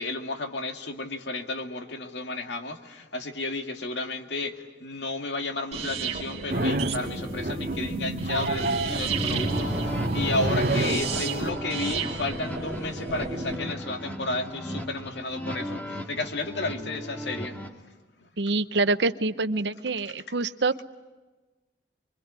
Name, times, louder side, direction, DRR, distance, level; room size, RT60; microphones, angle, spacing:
voice 1, 0.0-17.6, left 2 dB, 85° left, 6 dB, 2.3 m, -32 dB
sound 1, 5.7-13.6, right 3 dB, 40° right, 2.8 m, -31 dB
sound 2, 6.5-7.1 7.4-7.9 8.2-11.5, right 2 dB, 55° right, 1.1 m, -29 dB
sound 3, 8.9-17.7, equal, 10° left, 2.4 m, -36 dB
voice 2, 18.4-20.8, right 3 dB, 80° right, 13 dB, 0.9 m, -26 dB
25.5 x 24.0 x 9.7 m, 1.2 s
head